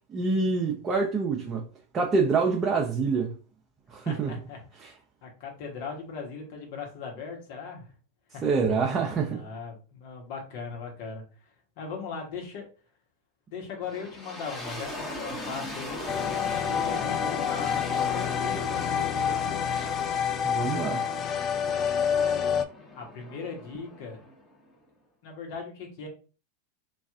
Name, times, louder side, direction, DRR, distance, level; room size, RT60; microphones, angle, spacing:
voice 1, 0.1-1.6 1.9-3.3 3.9-4.4 4.8-4.9 8.4-9.4 20.4-21.1, right 4 dB, 30° right, 0.6 m, -26 dB
voice 2, 4.0-4.6 5.2-7.9 8.3-8.4 9.3-11.2 11.8-12.7 13.5-16.1 16.6-19.6 23.0-24.2 25.2-26.1, left 5 dB, 60° left, 1.1 m, -39 dB
sound 1, 13.8-24.8, left 1 dB, 10° left, 1.0 m, -39 dB
sound 2, 16.1-22.7, left 8 dB, 35° left, 0.4 m, -28 dB
3.1 x 2.4 x 2.4 m
hypercardioid pair, 95°, 0 cm